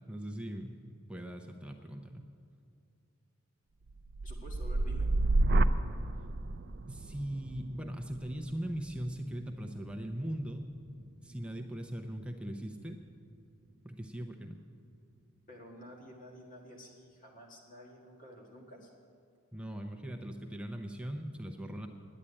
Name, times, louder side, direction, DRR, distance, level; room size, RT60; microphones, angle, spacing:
voice 1, 0.1-0.8 1.1-2.2 6.9-10.7 11.2-13.0 13.8-14.6 19.5-21.9, right 1 dB, 5° right, 3 dB, 0.6 m, -40 dB
sound 1, 3.9-11.9 12.4-12.8, right 2 dB, 50° right, 0.4 m, -32 dB
voice 2, 4.2-5.2 15.5-18.9, equal, 40° left, -1 dB, 1.8 m, -51 dB
10.0 x 8.9 x 9.8 m, 2.5 s
head